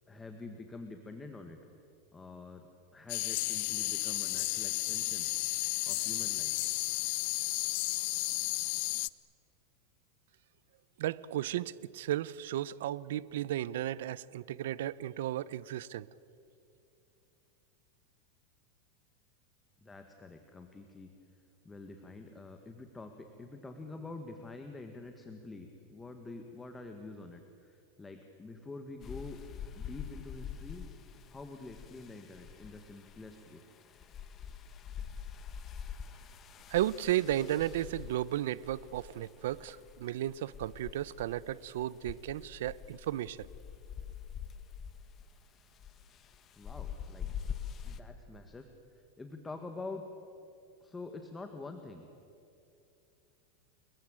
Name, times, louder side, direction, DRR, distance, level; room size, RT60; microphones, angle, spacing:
voice 1, 0.1-1.6 2.1-5.3 5.9-6.7 19.8-21.1 21.6-29.4 29.8-30.9 31.3-33.6 46.6-47.3 47.8-50.0 50.8-52.0, left 3 dB, 10° left, 5 dB, 1.6 m, -47 dB
sound 1, 3.1-9.1, left 23 dB, 55° left, 0.6 m, -33 dB
voice 2, 11.0-16.1 36.7-43.5, right 13 dB, 80° right, 20 dB, 0.7 m, -34 dB
sound 2, 29.0-48.0, left 8 dB, 25° left, 1.5 m, -45 dB
29.5 x 22.0 x 8.9 m, 2.6 s
supercardioid pair, 150°, 0 cm